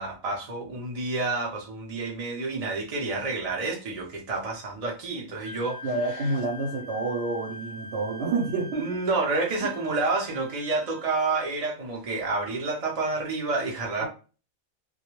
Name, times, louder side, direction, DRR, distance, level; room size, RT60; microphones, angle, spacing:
voice 1, 0.0-6.3 8.7-14.1, right 3 dB, 50° right, 0.5 m, -29 dB
Wind instrument woodwind instrument, 5.4-11.2, left 2 dB, 90° left, 1.0 m, -43 dB
voice 2, 5.8-8.9 14.0-14.1, right 3 dB, 65° right, 0.9 m, -28 dB
2.2 x 2.1 x 2.9 m
omnidirectional pair, 1.4 m